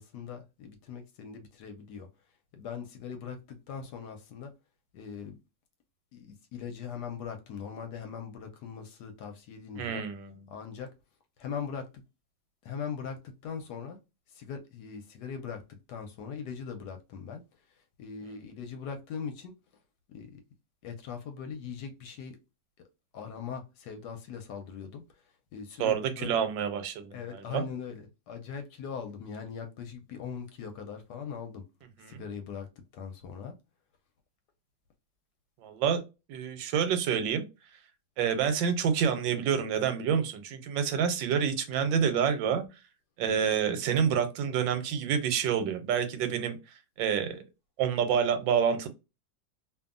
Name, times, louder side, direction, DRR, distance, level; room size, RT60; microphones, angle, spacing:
voice 1, 0.0-2.1 2.5-4.5 4.9-5.4 6.1-10.0 10.5-10.9 11.4-12.0 12.6-14.0 14.3-17.4 18.0-19.5 20.1-20.4 20.8-22.4 22.8-22.9 23.1-25.0 25.5-26.4 27.1-31.6 32.1-33.5, left 6 dB, 70° left, 1.1 m, -40 dB
voice 2, 9.8-10.5 18.3-18.4 25.8-27.6 32.0-32.2 35.6-36.0 36.3-37.4 38.2-42.6 43.2-46.6 47.0-47.4 47.8-48.9, right 7 dB, 90° right, 1.3 m, -28 dB
2.6 x 2.6 x 2.4 m
omnidirectional pair, 2.0 m